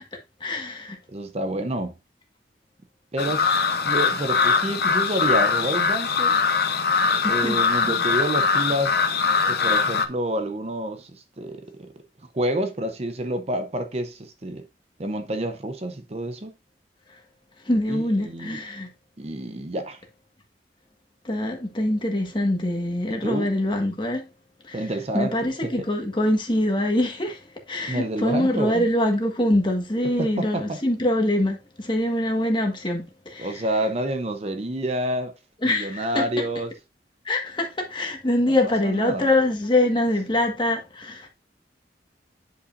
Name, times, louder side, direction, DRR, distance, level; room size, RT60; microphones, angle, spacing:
voice 1, 0.4-1.0 7.2-7.6 7.8-7.9 17.6-18.9 21.2-24.3 24.7-24.9 25.1-33.6 35.6-36.2 37.2-41.3, left 1 dB, 25° left, 1.6 m, -24 dB
voice 2, 1.1-1.9 3.1-3.6 3.8-6.4 7.3-9.0 9.5-11.9 12.3-14.6 15.0-16.5 17.9-18.6 19.2-20.0 23.1-23.5 24.7-25.3 25.6-25.7 27.9-28.9 30.2-30.8 33.4-35.3 35.6-36.7 38.6-39.3, right 1 dB, 35° right, 0.7 m, -28 dB
sound 1, 3.2-10.1, left 5 dB, 60° left, 0.8 m, -22 dB
9.7 x 5.5 x 2.6 m
head